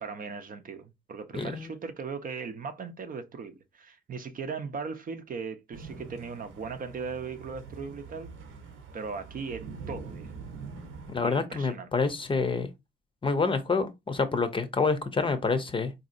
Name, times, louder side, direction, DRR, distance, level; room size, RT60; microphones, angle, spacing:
voice 1, 0.0-8.3 8.9-10.3 11.2-11.9, right 5 dB, 45° right, 0.6 m, -38 dB
voice 2, 1.3-1.7 11.1-12.7 13.2-15.9, left 4 dB, 25° left, 0.6 m, -27 dB
sound 1, 5.7-11.2, right 4 dB, 80° right, 0.9 m, -44 dB
3.9 x 2.7 x 2.5 m
cardioid pair, 90°, 20 cm